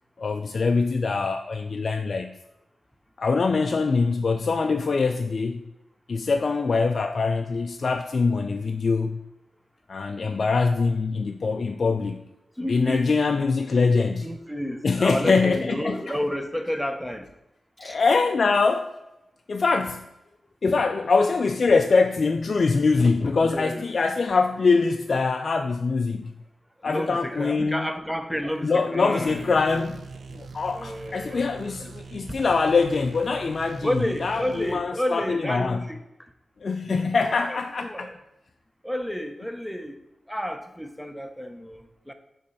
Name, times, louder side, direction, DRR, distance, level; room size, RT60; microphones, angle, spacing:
voice 1, 0.2-2.4 3.2-5.6 6.1-9.2 9.9-12.2 12.7-14.3 14.8-16.2 17.8-18.9 19.5-20.1 20.6-26.3 26.8-27.9 28.6-30.0 30.3-35.8 36.6-38.1, left 4 dB, 60° left, 0.3 m, -23 dB
voice 2, 12.6-13.1 14.2-17.3 17.8-17.9 23.4-23.9 26.8-29.4 30.7-31.5 33.8-36.0 37.0-37.1 37.5-38.2 38.8-40.0 40.3-42.1, equal, ahead, 0.7 m, -30 dB
sound 1, 29.3-34.8, right 4 dB, 75° right, 0.5 m, -42 dB
6.6 x 3.2 x 5.4 m
cardioid pair, 70°, 0 cm